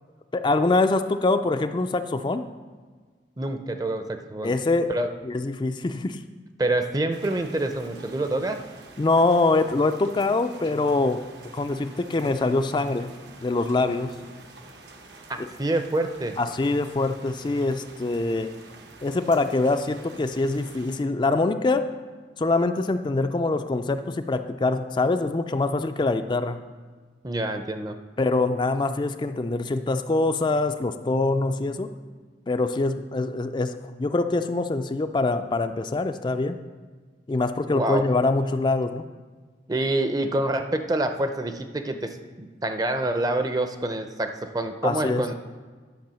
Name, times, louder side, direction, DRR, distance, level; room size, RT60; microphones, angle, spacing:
voice 1, 0.3-2.4 4.4-4.9 5.2-6.2 9.0-11.2 11.5-13.1 13.4-14.1 15.4-15.5 16.4-18.5 19.0-21.9 22.4-26.6 28.2-31.9 32.5-36.6 37.3-39.0 44.8-45.2, left 3 dB, 25° left, 8 dB, 0.3 m, -24 dB
voice 2, 3.4-4.5 4.9-5.1 6.6-8.6 15.3-16.4 27.2-28.0 37.7-38.1 39.7-45.3, right 1 dB, 20° right, 7 dB, 0.6 m, -27 dB
sound 1, 7.1-21.0, right 2 dB, 75° right, 1.2 m, -48 dB
10.5 x 5.5 x 6.9 m, 1.5 s
head